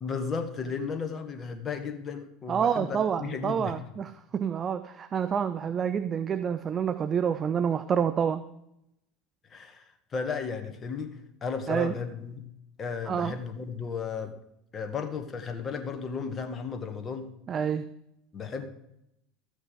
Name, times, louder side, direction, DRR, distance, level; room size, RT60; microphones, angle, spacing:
voice 1, 0.0-3.8 9.5-12.4 12.8-14.3 14.7-17.3 18.3-18.6, left 5 dB, 30° left, 7 dB, 1.7 m, -34 dB
voice 2, 2.5-8.4 11.7-11.9 13.1-13.4 17.5-17.8, right 7 dB, 35° right, 12 dB, 0.6 m, -28 dB
13.5 x 8.4 x 5.0 m, 0.80 s
figure-of-eight pair, 75°, 0 cm